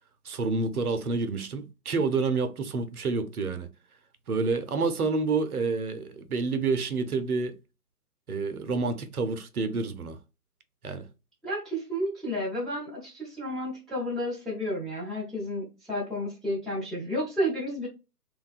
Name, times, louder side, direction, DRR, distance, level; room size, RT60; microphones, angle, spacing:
voice 1, 0.2-3.7 4.3-7.5 8.3-10.2 10.8-11.1, right 4 dB, 65° right, 0.6 m, -28 dB
voice 2, 11.4-17.9, equal, ahead, 0.4 m, -31 dB
2.5 x 2.3 x 2.3 m
figure-of-eight pair, 140°, 48 cm